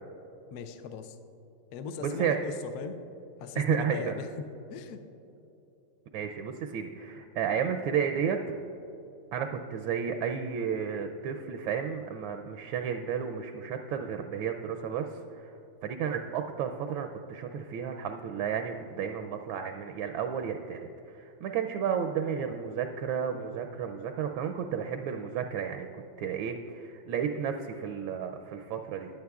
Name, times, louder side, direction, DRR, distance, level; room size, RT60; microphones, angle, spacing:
voice 1, 0.5-1.2 1.7-3.0 3.4-4.3 4.7-5.0, left 5 dB, 70° left, 8 dB, 1.0 m, -39 dB
voice 2, 2.0-2.4 3.6-4.2 6.1-8.4 9.3-15.5 15.8-29.1, right 7 dB, 80° right, 6 dB, 1.3 m, -32 dB
16.0 x 10.5 x 2.3 m, 2.9 s
omnidirectional pair, 2.2 m